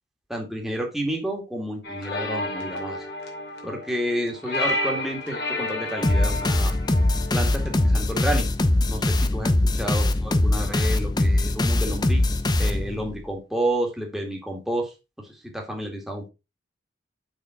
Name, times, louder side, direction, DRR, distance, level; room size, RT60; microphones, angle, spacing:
voice 1, 0.3-3.0 3.6-6.7 7.3-8.5 8.9-12.3 12.6-14.9 15.2-16.3, right 1 dB, ahead, 0 dB, 2.1 m, -30 dB
sound 1, 1.8-7.9, left 1 dB, 65° left, 2.7 m, -31 dB
sound 2, 6.0-13.2, left 1 dB, 25° left, 0.6 m, -22 dB
6.4 x 6.2 x 4.4 m, 0.27 s
head